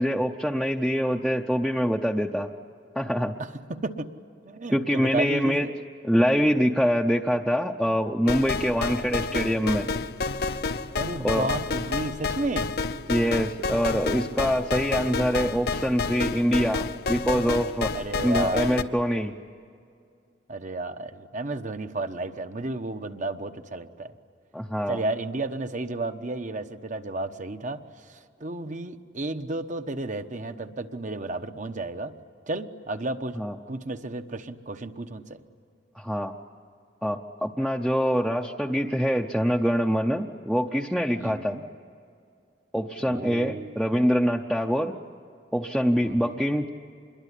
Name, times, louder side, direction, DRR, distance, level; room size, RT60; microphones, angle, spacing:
voice 1, 0.0-2.5 2.9-3.3 4.7-5.7 6.0-9.9 11.2-11.5 13.1-17.9 18.2-19.3 24.5-25.0 33.4-33.5 36.0-36.3 37.0-41.6 42.7-44.9 45.5-46.7, equal, ahead, 1 dB, 0.7 m, -24 dB
voice 2, 3.4-4.1 4.4-5.7 11.0-12.7 17.9-18.8 20.5-24.1 24.9-32.1 32.5-33.4 33.7-35.4 41.2-41.6 43.0-43.7 46.0-46.4, right 2 dB, 45° right, 8 dB, 1.1 m, -32 dB
sound 1, 8.3-18.8, left 4 dB, 60° left, 0.8 m, -30 dB
26.5 x 22.0 x 10.0 m, 2.3 s
head